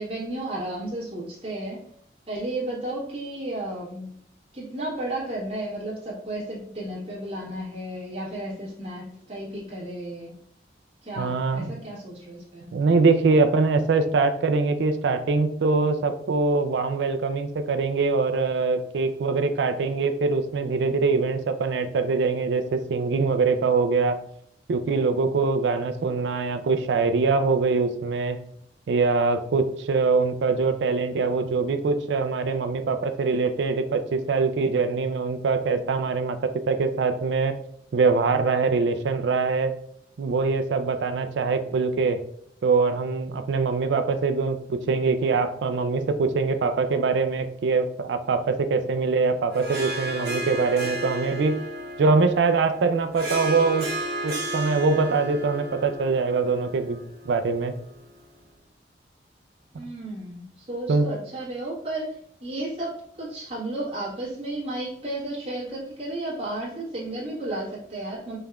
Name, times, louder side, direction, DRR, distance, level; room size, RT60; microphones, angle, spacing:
voice 1, 0.0-1.8 2.3-4.1 4.5-10.3 11.0-12.7 59.7-68.4, right 1 dB, 30° right, -8 dB, 1.3 m, -33 dB
voice 2, 11.2-11.7 12.7-24.2 24.7-28.4 28.9-37.6 37.9-39.7 40.2-42.2 42.6-51.6 52.0-53.9 54.2-57.0 57.3-57.7 60.9-61.1, right 4 dB, 80° right, 8 dB, 0.4 m, -23 dB
Harp, 49.5-58.2, right 1 dB, 60° right, 0.9 m, -34 dB
5.4 x 3.3 x 2.3 m, 0.68 s
head